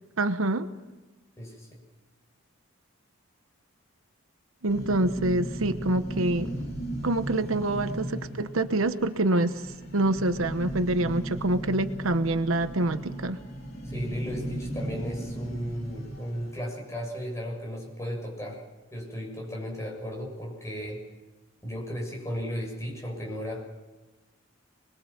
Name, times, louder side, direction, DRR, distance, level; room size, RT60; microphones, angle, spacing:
voice 1, 0.2-0.7 4.6-6.5 7.0-9.5 9.9-13.4, right 2 dB, 80° right, 10 dB, 1.1 m, -26 dB
voice 2, 1.4-1.8 13.8-18.6 18.9-21.0 21.6-23.7, equal, 15° left, -1 dB, 6.9 m, -35 dB
sound 1, 4.7-16.6, right 1 dB, 50° left, 3.7 m, -36 dB
25.5 x 21.5 x 7.4 m, 1.1 s
head